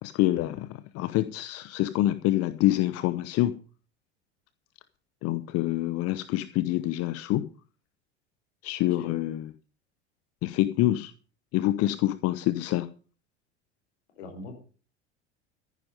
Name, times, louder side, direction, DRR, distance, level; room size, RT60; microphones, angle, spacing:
voice 1, 0.0-3.6 5.2-7.5 8.6-9.5 10.4-11.1 11.5-12.9, left 15 dB, 45° left, 15 dB, 0.8 m, -26 dB
voice 2, 14.1-14.6, left 3 dB, 65° left, 5 dB, 5.0 m, -42 dB
14.5 x 10.0 x 5.3 m, 0.39 s
figure-of-eight pair, 75°, 35 cm